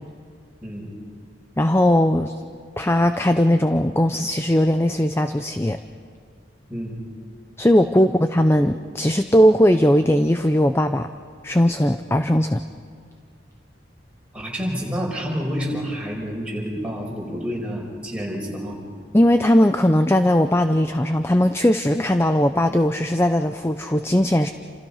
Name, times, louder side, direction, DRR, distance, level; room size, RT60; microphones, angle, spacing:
voice 1, 1.6-2.3 2.8-5.8 7.6-11.1 11.4-12.6 19.1-24.5, left 1 dB, 15° left, 8 dB, 0.5 m, -18 dB
voice 2, 14.3-18.8, equal, 5° right, -3 dB, 5.7 m, -29 dB
29.0 x 27.5 x 5.7 m, 2.1 s
head